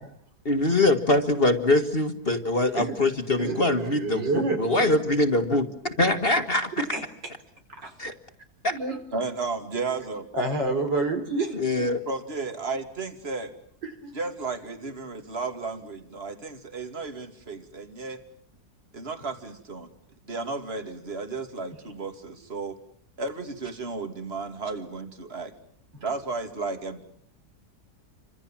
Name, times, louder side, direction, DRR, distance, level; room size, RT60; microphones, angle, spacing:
voice 1, 0.5-5.6 6.0-6.6 8.0-8.1 8.6-8.7 11.5-12.0, left 2 dB, 35° left, 7 dB, 1.8 m, -23 dB
voice 2, 3.4-4.9 6.9-7.0 7.7-8.1 8.7-9.0 10.3-11.8 13.8-14.1, right 3 dB, 80° right, 5 dB, 4.9 m, -29 dB
voice 3, 9.1-10.3 12.1-13.5 14.1-18.2 18.9-19.9 20.3-22.8 23.2-25.5 26.0-27.0, right 4 dB, 35° right, 7 dB, 2.7 m, -33 dB
29.5 x 26.0 x 7.4 m, 0.66 s
omnidirectional pair, 1.9 m